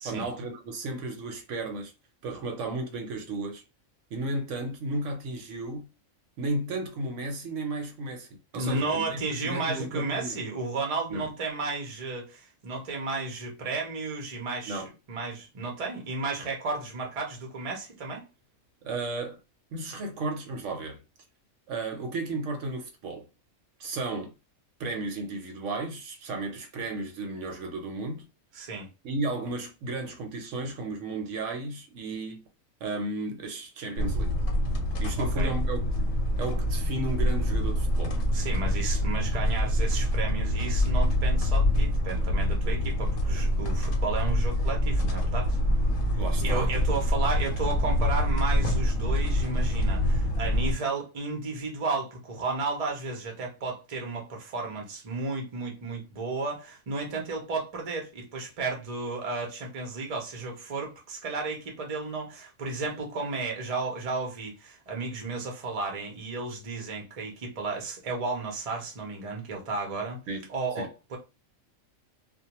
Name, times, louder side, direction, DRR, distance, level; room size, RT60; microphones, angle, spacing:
voice 1, 0.0-1.9 2.2-3.6 4.1-5.9 6.4-10.4 11.1-11.3 14.7-14.9 18.8-19.4 19.7-21.0 21.7-23.3 23.8-24.3 24.8-28.2 29.0-32.4 32.8-34.3 35.0-35.9 36.4-38.2 46.2-46.7 70.3-70.5 70.8-70.9, right 2 dB, 70° right, 0.9 m, -34 dB
voice 2, 8.5-18.3 28.5-28.9 35.2-35.5 38.3-45.6 46.1-70.2 70.5-71.2, right 3 dB, 40° right, 0.5 m, -33 dB
sound 1, 34.0-50.7, equal, 70° left, 1.0 m, -25 dB
2.2 x 2.1 x 2.9 m
omnidirectional pair, 1.4 m